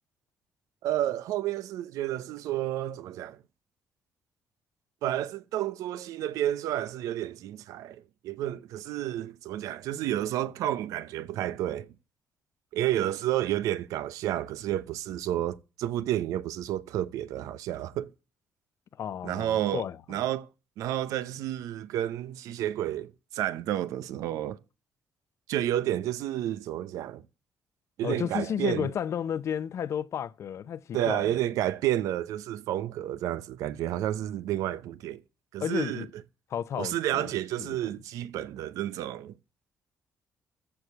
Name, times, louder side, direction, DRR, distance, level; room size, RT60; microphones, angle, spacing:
voice 1, 0.8-3.4 5.0-11.9 12.7-18.1 19.2-20.5 20.8-24.6 25.5-27.2 28.0-28.9 30.9-35.2 35.5-36.1 36.8-39.3, right 12 dB, 85° right, 0.7 m, -31 dB
voice 2, 19.0-20.2 28.0-31.4 35.6-36.1 36.5-37.3 37.6-37.8, left 9 dB, 60° left, 0.7 m, -32 dB
14.0 x 4.8 x 7.9 m
cardioid pair, 95°, 6 cm